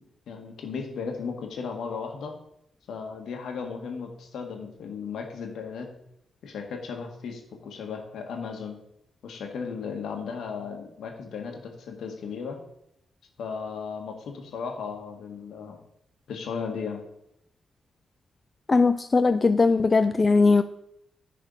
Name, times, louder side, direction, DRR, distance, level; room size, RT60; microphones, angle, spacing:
voice 1, 0.3-2.3 2.9-5.9 6.4-8.8 9.2-12.6 13.4-15.8 16.3-17.0, left 5 dB, 75° left, 3 dB, 1.5 m, -35 dB
voice 2, 18.7-20.6, left 4 dB, 35° left, 10 dB, 0.4 m, -20 dB
10.0 x 4.2 x 5.4 m, 0.78 s
supercardioid pair, 55°, 0 cm